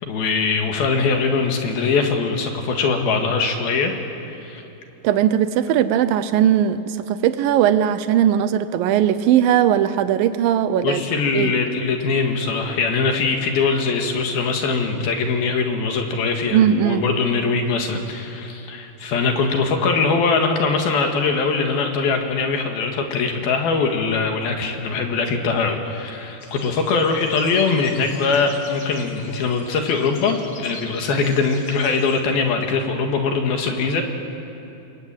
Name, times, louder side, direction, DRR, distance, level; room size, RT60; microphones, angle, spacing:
voice 1, 0.0-3.9 4.4-4.6 10.8-34.0, left 4 dB, 65° left, 4 dB, 3.5 m, -22 dB
voice 2, 5.0-11.0 11.3-11.5 16.5-17.1, right 10 dB, 75° right, 12 dB, 2.2 m, -18 dB
sound 1, 26.4-32.2, left 4 dB, 40° left, 1.6 m, -43 dB
28.0 x 22.5 x 9.1 m, 2.9 s
omnidirectional pair, 4.9 m